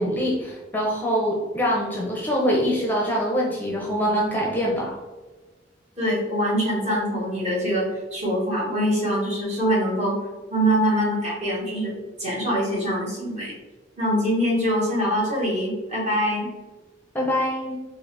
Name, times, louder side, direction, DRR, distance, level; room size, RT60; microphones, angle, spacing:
voice 1, 0.0-5.0 17.1-17.7, equal, 10° left, -3 dB, 0.6 m, -24 dB
voice 2, 6.0-10.2 10.5-13.5 14.0-16.5, equal, 40° right, -6 dB, 1.5 m, -24 dB
3.9 x 2.5 x 3.2 m, 1.2 s
head